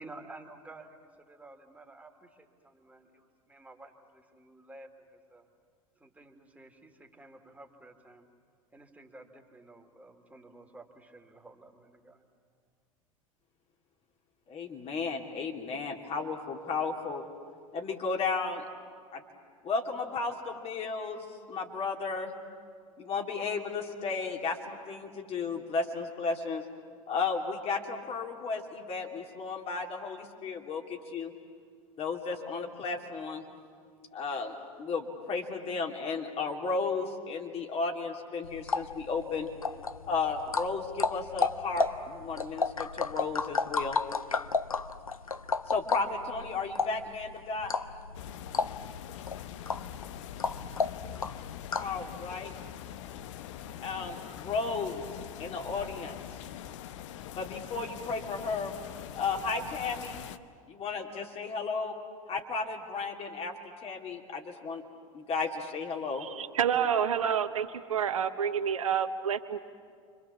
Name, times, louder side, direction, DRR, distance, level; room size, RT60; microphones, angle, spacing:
voice 1, 0.0-5.5 6.0-8.3 8.7-12.2, right 2 dB, 10° right, 3 dB, 2.7 m, -52 dB
voice 2, 14.5-17.3 17.7-18.6 19.1-19.2 19.6-22.3 23.0-26.7 27.1-31.3 32.0-33.5 34.1-39.5 40.1-44.0 45.7-47.7 51.8-52.5 53.8-55.0 55.4-56.4 57.4-58.7 59.1-60.2 60.7-62.0 62.3-63.5 63.8-64.8 65.1-66.3, left 4 dB, 35° left, 2 dB, 3.1 m, -34 dB
sound 1, 38.4-52.0, left 4 dB, 90° left, 0.6 m, -33 dB
sound 2, 48.1-60.4, left 10 dB, 60° left, 0.9 m, -43 dB
voice 3, 66.2-69.6, right 8 dB, 75° right, 9 dB, 1.2 m, -29 dB
30.0 x 25.5 x 7.3 m, 2.1 s
figure-of-eight pair, 80°, 18 cm